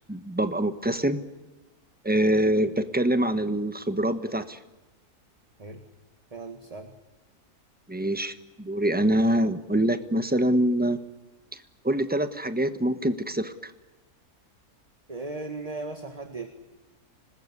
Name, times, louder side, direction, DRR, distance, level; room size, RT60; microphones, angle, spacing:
voice 1, 0.1-1.2 2.0-4.6 7.9-11.0 11.5-13.7, right 1 dB, 5° right, 10 dB, 1.1 m, -25 dB
voice 2, 6.3-6.9 15.1-16.5, right 3 dB, 25° right, 6 dB, 1.8 m, -37 dB
25.5 x 20.0 x 9.8 m, 1.1 s
omnidirectional pair, 1.6 m